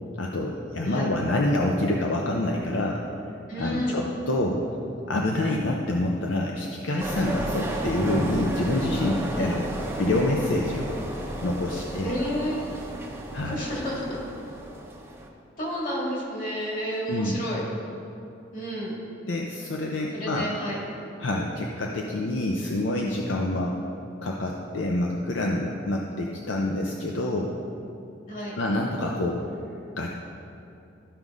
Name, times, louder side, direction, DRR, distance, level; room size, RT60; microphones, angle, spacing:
voice 1, 0.2-3.0 3.6-4.6 5.1-9.6 10.0-11.0 11.4-12.1 13.3-13.6 17.1-17.4 19.3-20.5 21.2-23.8 24.2-27.5 28.5-29.4 30.0-30.1, left 1 dB, 70° left, 0 dB, 0.6 m, -27 dB
voice 2, 3.5-4.0 9.3-9.5 12.0-12.6 13.4-14.2 15.6-17.6 18.5-18.9 20.1-20.8 28.3-28.5, equal, 45° left, -4 dB, 2.1 m, -30 dB
sound 1, 7.0-15.3, right 1 dB, 10° right, 0.7 m, -33 dB
13.5 x 5.2 x 3.6 m, 2.7 s
head